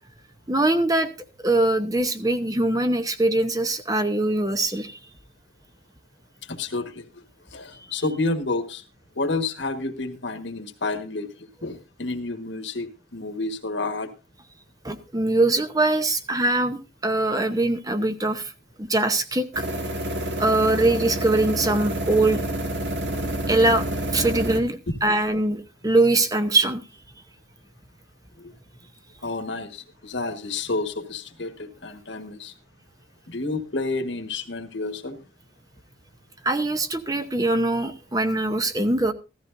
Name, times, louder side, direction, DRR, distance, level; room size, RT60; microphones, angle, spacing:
voice 1, 0.5-1.1 1.4-5.0 14.8-18.5 18.8-19.6 20.4-22.4 23.5-23.9 24.1-26.8 36.4-39.1, right 2 dB, 20° right, 9 dB, 0.8 m, -22 dB
voice 2, 6.4-7.2 7.5-8.8 9.1-14.1 24.9-25.0 28.4-28.5 29.2-32.5 33.3-35.2, left 3 dB, 70° left, 8 dB, 1.5 m, -30 dB
sound 1, 19.5-24.6, right 1 dB, 65° right, 2.1 m, -28 dB
15.5 x 13.5 x 2.6 m, 0.28 s
head